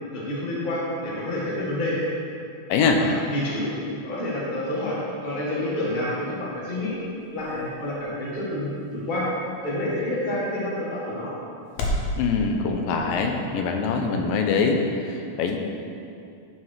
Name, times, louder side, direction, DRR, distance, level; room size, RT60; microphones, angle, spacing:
voice 1, 0.1-2.0 3.0-3.7 4.0-6.9 7.3-9.3 9.6-11.3, left 1 dB, 25° left, -7 dB, 1.0 m, -28 dB
voice 2, 2.7-3.0 12.2-15.6, left 4 dB, 85° left, 3 dB, 2.4 m, -23 dB
sound 1, 5.9-12.1, left 1 dB, 65° left, 1.7 m, -36 dB
11.0 x 4.8 x 4.6 m, 2.5 s
omnidirectional pair, 4.1 m